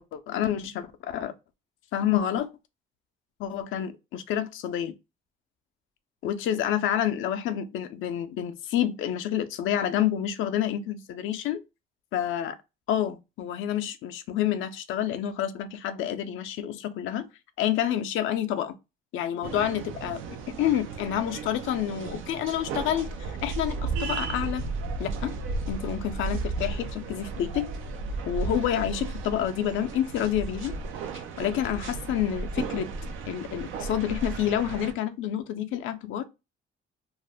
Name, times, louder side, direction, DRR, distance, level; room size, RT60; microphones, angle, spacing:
voice 1, 0.1-1.3 1.9-2.5 3.4-4.9 6.2-11.6 12.1-12.6 12.9-17.3 17.6-18.7 19.1-20.2 20.5-24.6 25.0-25.3 25.7-27.7 28.2-30.8 31.1-32.9 33.3-36.3, left 10 dB, 85° left, 0.4 m, -28 dB
sound 1, 19.4-34.9, right 4 dB, 85° right, 0.5 m, -34 dB
2.5 x 2.1 x 3.3 m
cardioid pair, 90°, 20 cm